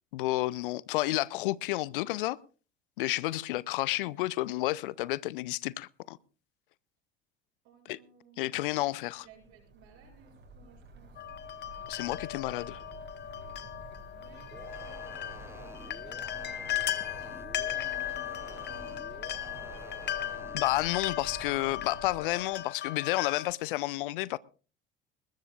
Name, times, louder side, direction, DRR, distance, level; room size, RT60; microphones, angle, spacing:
voice 1, 0.1-2.4 3.0-6.2 7.9-8.0 8.4-9.2 11.9-12.8 20.5-24.4, left 18 dB, 65° left, 0.6 m, -31 dB
voice 2, 7.6-8.6 9.1-11.2 14.1-16.7 17.2-20.0, right 3 dB, 55° right, 7.3 m, -58 dB
sound 1, 9.1-22.6, right 2 dB, 40° right, 6.2 m, -50 dB
sound 2, 11.1-23.5, left 11 dB, 35° left, 1.2 m, -37 dB
sound 3, 14.5-20.6, right 2 dB, 10° right, 0.7 m, -50 dB
20.5 x 20.0 x 2.4 m
figure-of-eight pair, 60°, 29 cm